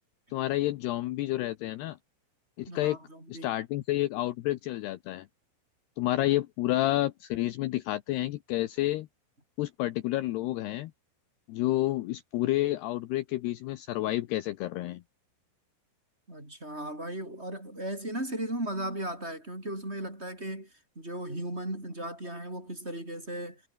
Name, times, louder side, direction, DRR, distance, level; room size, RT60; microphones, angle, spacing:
voice 1, 0.3-2.0 2.6-3.0 3.3-5.3 6.0-9.1 9.6-10.9 11.5-15.0, left 16 dB, 85° left, 2.3 m, -30 dB
voice 2, 2.7-3.5 16.3-23.6, right 1 dB, 10° right, 6.2 m, -36 dB
omnidirectional pair, 6.0 m